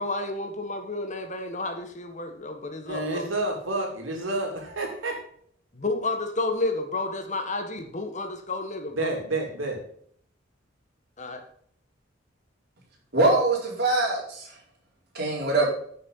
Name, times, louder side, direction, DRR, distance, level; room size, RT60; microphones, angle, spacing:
voice 1, 0.0-3.3 5.7-9.1 11.2-11.4, left 2 dB, 40° left, 6 dB, 1.5 m, -31 dB
voice 2, 2.9-5.2 8.9-9.8, right 2 dB, 85° right, 1 dB, 3.2 m, -29 dB
voice 3, 13.1-14.5 15.1-15.7, right 2 dB, 55° right, -2 dB, 4.3 m, -23 dB
10.5 x 6.5 x 5.6 m, 0.62 s
head